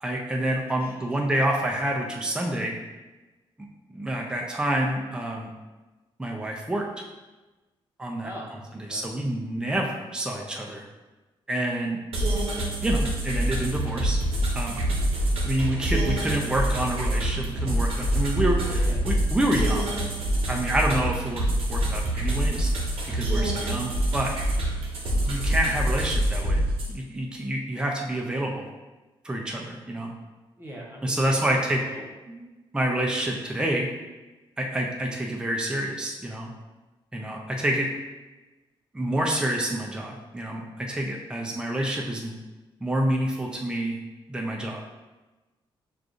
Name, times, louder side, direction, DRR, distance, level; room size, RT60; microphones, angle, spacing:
voice 1, 0.0-2.7 3.9-5.5 6.2-6.9 8.0-8.3 8.9-10.8 11.5-12.0 12.8-14.2 14.5-14.9 15.4-19.9 20.5-22.7 23.1-24.3 25.2-26.6 26.9-28.7 29.2-30.1 31.0-31.8 32.3-32.5 32.7-33.9 34.6-36.5 37.1-37.9 38.9-42.3 42.8-44.0 44.3-44.8, right 1 dB, 10° right, -1 dB, 0.5 m, -28 dB
voice 2, 0.8-1.2 8.2-9.1 18.6-19.2 30.6-31.6 31.8-32.0, equal, 25° right, -3 dB, 0.9 m, -42 dB
sound 1, 12.1-26.9, right 1 dB, 80° right, 0.9 m, -26 dB
6.4 x 2.4 x 2.5 m, 1.2 s
cardioid pair, 105°, 9 cm